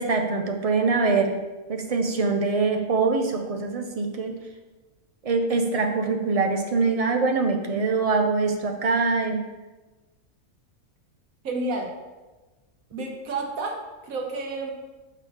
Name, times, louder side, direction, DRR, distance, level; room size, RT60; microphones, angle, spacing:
voice 1, 0.0-1.3 1.7-4.3 5.2-9.4, right 4 dB, 55° right, 4 dB, 0.4 m, -23 dB
voice 2, 11.4-11.9 12.9-14.7, right 2 dB, 80° right, 2 dB, 1.5 m, -30 dB
6.2 x 4.0 x 5.6 m, 1.2 s
omnidirectional pair, 1.4 m